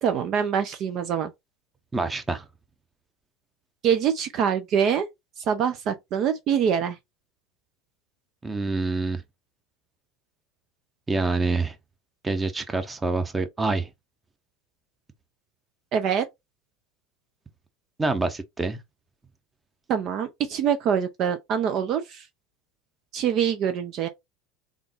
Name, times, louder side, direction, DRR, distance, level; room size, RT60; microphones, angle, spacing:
voice 1, 0.0-1.3 3.8-5.1 5.5-7.0 15.9-16.3 19.9-22.2 23.1-24.1, right 8 dB, 50° right, 0.6 m, -24 dB
voice 2, 1.9-2.5 8.4-9.2 11.1-11.8 12.2-13.9 18.0-18.8, right 3 dB, 15° right, 1.0 m, -26 dB
3.8 x 3.6 x 3.0 m
hypercardioid pair, 80°, 0 cm